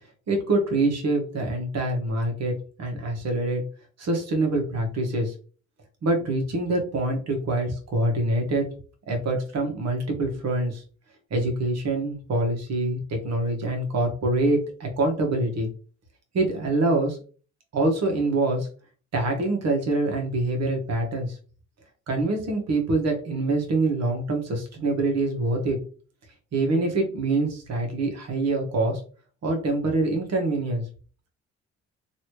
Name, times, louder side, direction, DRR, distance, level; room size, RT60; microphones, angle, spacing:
voice 1, 0.3-2.5 2.8-3.6 4.0-5.3 6.0-8.6 9.1-10.8 11.3-15.7 16.3-17.2 17.7-18.7 19.1-21.4 22.1-25.8 26.5-29.0 29.4-30.8, right 2 dB, 60° right, 3 dB, 1.3 m, -25 dB
3.1 x 2.7 x 3.1 m, 0.39 s
cardioid pair, 90°, 30 cm